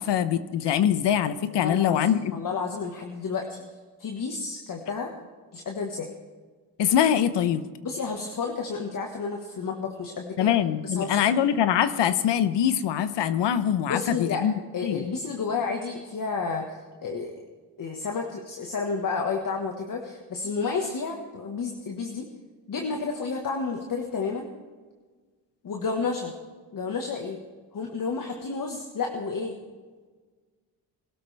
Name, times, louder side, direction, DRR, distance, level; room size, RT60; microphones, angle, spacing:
voice 1, 0.0-2.3 6.8-7.7 10.4-14.5 14.8-15.0, left 9 dB, 85° left, 13 dB, 1.0 m, -23 dB
voice 2, 1.5-3.6 4.0-5.1 5.5-6.1 7.8-10.5 10.8-11.2 13.9-14.4 14.7-17.3 17.8-22.3 22.7-24.5 25.6-26.3 26.7-27.4 27.7-29.6, left 4 dB, 50° left, 2 dB, 1.6 m, -31 dB
21.0 x 13.0 x 3.5 m, 1.4 s
cardioid pair, 90°, 42 cm